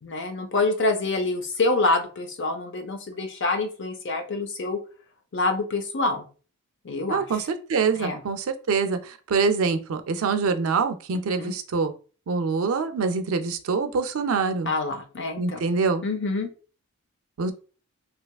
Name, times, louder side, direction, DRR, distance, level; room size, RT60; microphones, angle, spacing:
voice 1, 0.0-4.8 5.3-6.3 6.8-7.2 8.0-8.2 11.4-11.5 14.7-15.6 16.0-16.5, left 3 dB, 55° left, 5 dB, 0.6 m, -26 dB
voice 2, 7.1-11.9 12.3-14.7 15.4-16.0 17.4-17.5, right 4 dB, 65° right, 8 dB, 0.4 m, -25 dB
3.3 x 2.8 x 2.3 m, 0.37 s
head